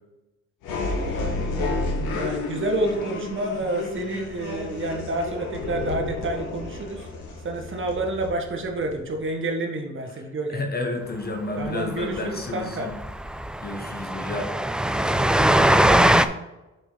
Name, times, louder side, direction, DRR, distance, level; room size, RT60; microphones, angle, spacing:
sound 1, 0.6-9.3, left 2 dB, 90° left, 1.8 m, -31 dB
voice 1, 1.6-7.1 7.4-10.6 11.6-12.9, right 2 dB, 40° right, 3 dB, 1.5 m, -29 dB
voice 2, 10.5-13.0 13.6-14.5, left 2 dB, 30° left, 3 dB, 1.2 m, -30 dB
Train, 11.7-11.8 12.0-12.2 12.4-12.5 12.9-16.3, right 1 dB, 5° right, 0.3 m, -20 dB
7.6 x 5.0 x 4.0 m, 1.0 s
cardioid pair, 90°, 30 cm